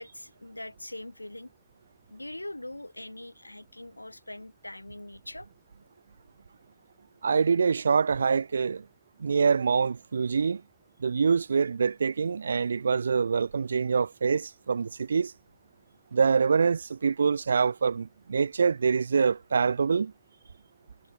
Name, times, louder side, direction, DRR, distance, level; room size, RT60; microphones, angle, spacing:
voice 1, 0.0-1.5 2.1-5.5, left 1 dB, 85° left, 2.1 m, -42 dB
voice 2, 7.2-8.9 9.2-10.6 11.0-15.3 16.1-20.1, right 5 dB, 75° right, 1.0 m, -25 dB
figure-of-eight pair, 90°, 0 cm